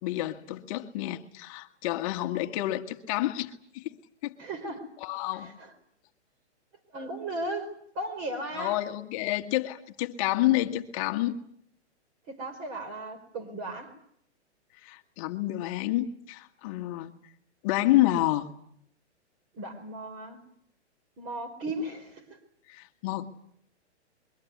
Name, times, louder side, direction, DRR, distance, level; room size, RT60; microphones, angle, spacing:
voice 1, 0.0-3.9 4.2-4.3 5.0-5.5 8.5-11.4 14.8-17.1 17.6-18.5 22.7-23.3, left 15 dB, 30° left, 6 dB, 1.5 m, -29 dB
voice 2, 4.4-4.9 5.3-5.7 6.9-8.8 12.3-14.0 19.5-20.4 21.2-22.4, right 1 dB, 30° right, 9 dB, 4.2 m, -36 dB
23.0 x 23.0 x 9.4 m, 0.68 s
hypercardioid pair, 155°, 35 cm